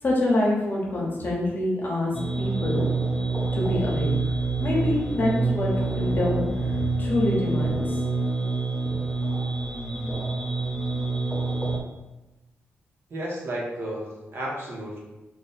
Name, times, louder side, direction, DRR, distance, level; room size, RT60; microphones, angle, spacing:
voice 1, 0.0-2.1 2.4-2.9 3.5-6.4 7.0-8.0, left 1 dB, 45° left, -3 dB, 1.0 m, -26 dB
sound 1, 2.1-11.8, right 3 dB, ahead, 0.6 m, -26 dB
voice 2, 13.1-15.0, right 1 dB, 60° right, -4 dB, 1.2 m, -32 dB
3.5 x 2.6 x 4.2 m, 1.0 s
cardioid pair, 100°, 5 cm